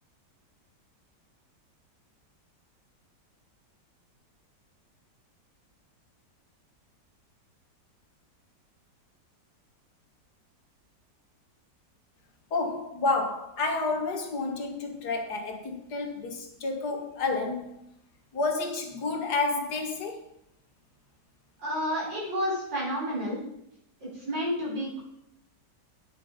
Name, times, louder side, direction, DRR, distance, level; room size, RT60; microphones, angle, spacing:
voice 1, 12.5-17.8 18.3-20.2, left 3 dB, 65° left, 4 dB, 1.9 m, -30 dB
voice 2, 21.6-23.4 24.1-25.0, equal, 80° right, -6 dB, 5.0 m, -30 dB
8.9 x 6.8 x 5.1 m, 0.78 s
omnidirectional pair, 1.9 m